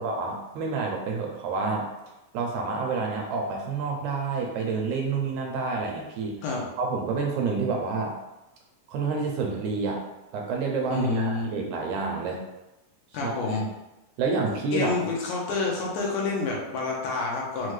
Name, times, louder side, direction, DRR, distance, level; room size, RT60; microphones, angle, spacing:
voice 1, 0.0-1.9 2.3-6.4 6.8-8.2 8.9-10.0 10.3-12.4 13.2-13.6 14.2-15.0, right 4 dB, 80° right, 0 dB, 1.8 m, -28 dB
voice 2, 10.9-11.5 13.1-13.7 14.5-17.7, left 3 dB, 85° left, -2 dB, 2.3 m, -28 dB
6.2 x 2.2 x 3.1 m, 0.97 s
omnidirectional pair, 3.6 m